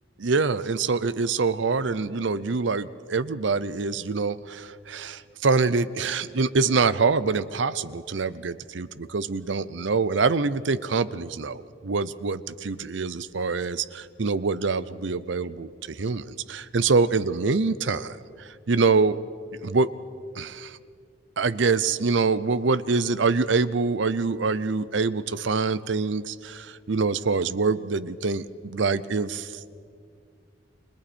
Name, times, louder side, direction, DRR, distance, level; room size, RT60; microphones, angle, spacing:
voice 1, 0.2-19.2 19.6-19.9 20.4-20.8 21.4-29.5, right 4 dB, 75° right, 16 dB, 0.7 m, -25 dB
29.5 x 22.5 x 4.4 m, 2.2 s
head